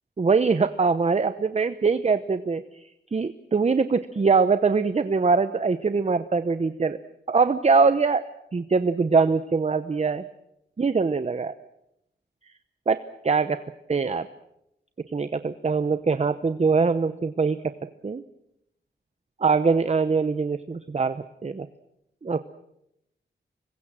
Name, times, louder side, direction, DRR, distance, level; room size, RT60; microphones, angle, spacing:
voice 1, 0.2-2.6 3.1-7.0 7.3-8.2 8.5-10.2 10.8-11.5 12.9-13.0 13.2-13.6 13.9-14.3 15.1-17.7 18.0-18.2 19.4-21.7 22.2-22.4, right 4 dB, 35° right, 12 dB, 0.9 m, -22 dB
26.0 x 22.0 x 7.6 m, 0.83 s
wide cardioid pair, 100°, 19 cm